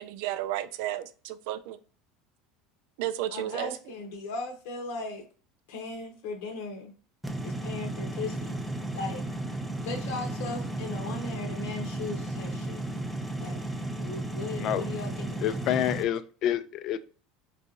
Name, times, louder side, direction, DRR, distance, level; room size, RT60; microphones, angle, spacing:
voice 1, 0.0-1.8 3.0-3.7, right 13 dB, 70° right, 0.3 m, -32 dB
voice 2, 3.3-5.3 5.7-6.9 7.4-8.6 8.9-9.2 9.8-12.8 13.4-13.6 14.0-15.7, left 3 dB, 75° left, 0.8 m, -38 dB
sound 1, 7.2-16.0, right 1 dB, ahead, 0.5 m, -34 dB
voice 3, 15.4-17.0, left 11 dB, 50° left, 0.3 m, -28 dB
3.8 x 2.5 x 2.8 m
supercardioid pair, 110°, 0 cm